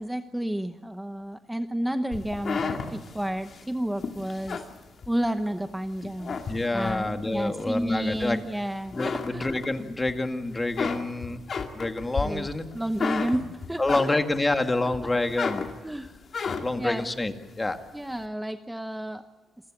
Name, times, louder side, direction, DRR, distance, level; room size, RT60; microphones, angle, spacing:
voice 1, 0.0-4.6 5.1-6.4 6.7-9.4 12.2-12.5 12.7-13.8 15.8-17.1 17.9-19.2, right 1 dB, 5° right, 9 dB, 0.9 m, -31 dB
sound 1, 2.1-5.5 6.0-7.1 7.6-8.6 8.9-10.1 10.5-14.5 14.9-16.9, left 5 dB, 50° left, 2.2 m, -33 dB
voice 2, 6.5-8.4 8.9-11.4 11.7-12.6 13.8-15.7 16.5-17.8, left 2 dB, 20° left, 7 dB, 2.0 m, -27 dB
28.0 x 15.5 x 8.6 m, 1.2 s
cardioid pair, 80°, 0 cm